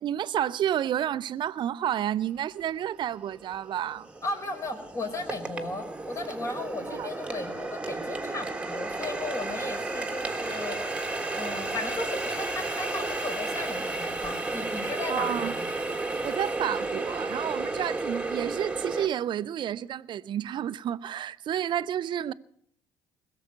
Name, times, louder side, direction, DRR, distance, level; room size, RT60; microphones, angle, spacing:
voice 1, 0.0-4.1 6.9-7.1 15.1-15.5 16.2-22.3, right 10 dB, 50° right, 0.6 m, -30 dB
Water tap faucet, 2.6-2.7 3.3-19.1, right 2 dB, 10° right, 1.6 m, -33 dB
voice 2, 4.2-10.8 11.3-15.7, left 2 dB, 30° left, 3.9 m, -36 dB
21.0 x 7.1 x 9.5 m
hypercardioid pair, 55°, 10 cm